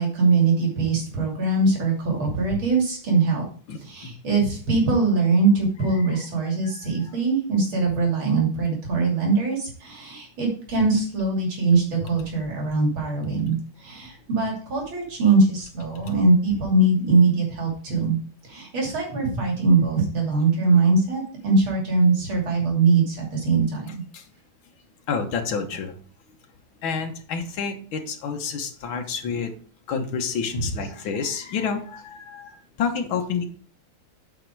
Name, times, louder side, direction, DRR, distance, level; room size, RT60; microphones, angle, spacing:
voice 1, 0.0-3.4 3.8-18.2 18.4-23.9 30.5-30.6, right 3 dB, 85° right, -1 dB, 3.6 m, -22 dB
voice 2, 3.7-4.1 6.0-6.1 6.6-6.8 24.1-24.2 25.1-25.9 26.8-29.5 29.9-33.5, left 6 dB, 75° left, 4 dB, 1.9 m, -29 dB
8.5 x 5.1 x 4.6 m, 0.43 s
omnidirectional pair, 2.2 m